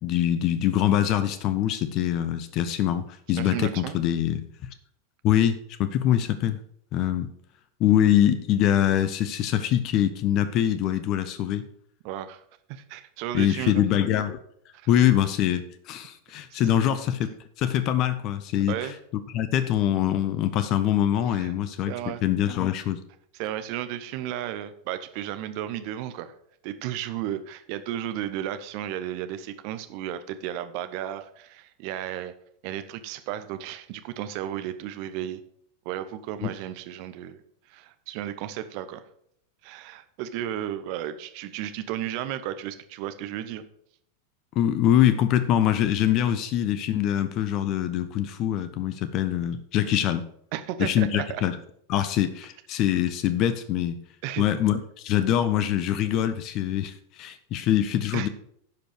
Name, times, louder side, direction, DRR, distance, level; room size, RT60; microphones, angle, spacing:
voice 1, 0.0-4.5 5.2-6.6 6.9-7.3 7.8-11.6 13.3-14.4 14.9-18.9 19.3-21.9 22.2-23.0 36.4-36.5 44.6-50.3 50.8-51.6 51.9-54.0 54.4-58.3, left 11 dB, 40° left, 12 dB, 0.7 m, -24 dB
voice 2, 3.4-4.0 12.0-12.4 12.7-13.8 14.7-14.9 16.5-17.0 18.7-19.0 21.3-21.5 21.9-22.2 23.3-26.3 26.6-32.3 32.6-35.4 35.8-37.4 37.7-39.0 39.6-43.6 50.5-51.4 54.2-54.5 58.1-58.3, right 11 dB, 45° right, 10 dB, 0.9 m, -34 dB
10.5 x 5.2 x 6.4 m, 0.69 s
figure-of-eight pair, 90°, 0 cm